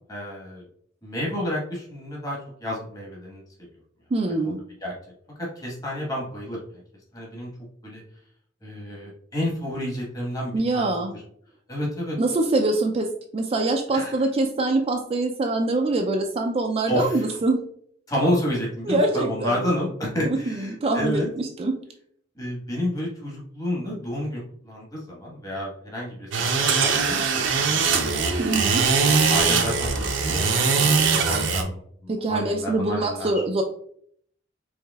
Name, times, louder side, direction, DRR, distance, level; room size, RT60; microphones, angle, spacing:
voice 1, 0.1-0.6 1.0-3.4 4.4-4.5 4.8-4.9 5.4-6.6 7.1-7.5 7.8-8.0 8.6-10.9 11.7-12.2 13.9-14.2 16.9-17.2 18.1-21.3 22.4-27.9 28.3-28.4 29.3-33.3, equal, 20° left, -4 dB, 1.3 m, -30 dB
voice 2, 4.1-4.6 10.5-11.2 12.2-17.6 18.9-19.7 20.3-21.8 28.4-28.8 32.1-33.6, right 2 dB, 30° right, 3 dB, 0.3 m, -24 dB
sound 1, 26.3-31.6, right 5 dB, 70° right, 0.6 m, -21 dB
4.8 x 3.1 x 2.3 m, 0.63 s
head